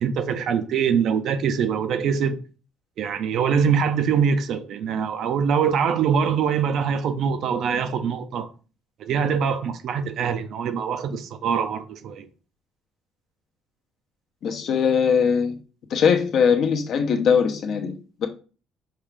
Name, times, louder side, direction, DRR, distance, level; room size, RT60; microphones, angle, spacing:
voice 1, 0.0-2.4 3.0-8.5 9.0-12.3, right 7 dB, 65° right, 0.5 m, -23 dB
voice 2, 14.4-15.6 15.9-18.3, left 6 dB, 60° left, 0.8 m, -21 dB
5.5 x 2.4 x 3.3 m
cardioid pair, 105°, 0 cm